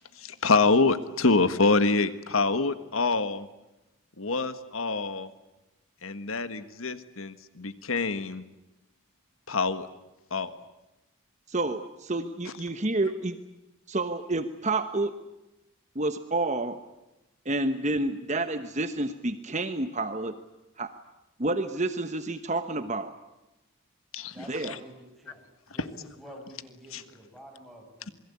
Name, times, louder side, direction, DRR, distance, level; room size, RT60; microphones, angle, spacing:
voice 1, 0.1-3.5 4.2-5.3 6.0-8.4 9.5-9.9 10.3-10.5 12.4-12.5 24.1-24.3 26.9-27.0, left 3 dB, 75° left, 11 dB, 1.6 m, -26 dB
voice 2, 11.5-13.4 13.9-15.1 15.9-16.8 17.4-20.4 20.8-20.9 21.4-23.1 24.5-24.7, right 2 dB, 35° right, 9 dB, 1.2 m, -29 dB
voice 3, 24.3-28.1, equal, ahead, 2 dB, 6.7 m, -49 dB
27.5 x 22.0 x 8.6 m, 0.96 s
head